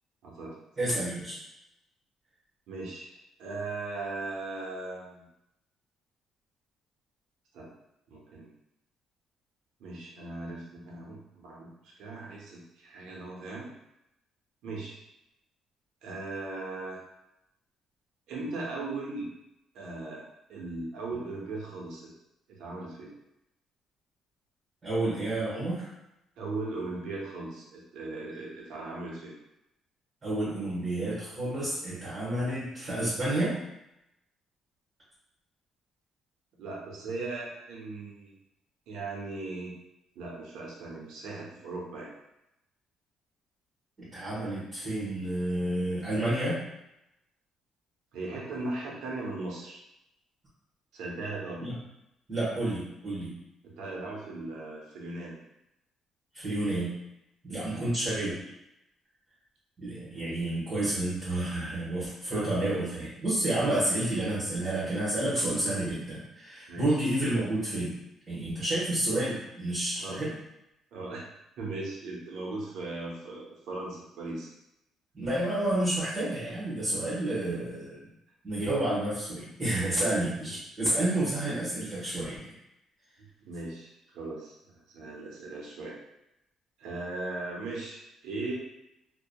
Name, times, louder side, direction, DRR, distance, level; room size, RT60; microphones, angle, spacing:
voice 1, 0.2-0.6 2.7-5.2 7.5-7.7 8.1-8.5 9.8-13.7 14.6-15.0 16.0-17.0 18.3-19.3 19.7-20.2 20.5-22.1 22.6-23.1 26.4-29.3 36.6-38.3 38.9-39.7 40.1-42.1 48.1-49.8 50.9-51.6 53.6-55.4 57.5-57.9 60.1-60.4 62.3-62.8 63.6-63.8 66.7-67.0 70.0-70.2 70.9-71.3 71.6-74.5 83.4-86.0 86.8-88.5, right 2 dB, 80° right, -4 dB, 0.7 m, -38 dB
voice 2, 0.8-1.4 24.8-25.9 30.2-33.6 44.0-46.6 51.6-51.7 52.3-53.4 56.3-56.9 57.4-58.3 59.8-67.9 68.3-70.3 75.1-78.0 78.4-82.5, right 1 dB, 35° right, -9 dB, 1.1 m, -30 dB
2.7 x 2.2 x 2.2 m, 0.86 s
cardioid pair, 100°, 0 cm